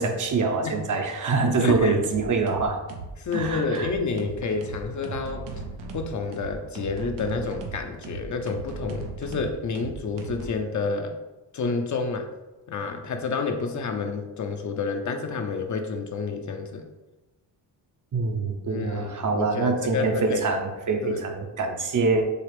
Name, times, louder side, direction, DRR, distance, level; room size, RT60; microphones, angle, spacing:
voice 1, 0.0-2.8 3.3-3.9 18.1-22.2, right 4 dB, 45° right, 4 dB, 0.7 m, -25 dB
voice 2, 1.6-1.9 3.2-5.6 5.9-11.1 11.5-12.3 12.7-16.8 18.7-20.5 21.0-21.2, left 4 dB, 45° left, 5 dB, 0.6 m, -29 dB
sound 1, 1.6-10.5, right 4 dB, 85° right, 0.8 m, -37 dB
6.5 x 2.4 x 3.3 m, 1.1 s
cardioid pair, 100°, 43 cm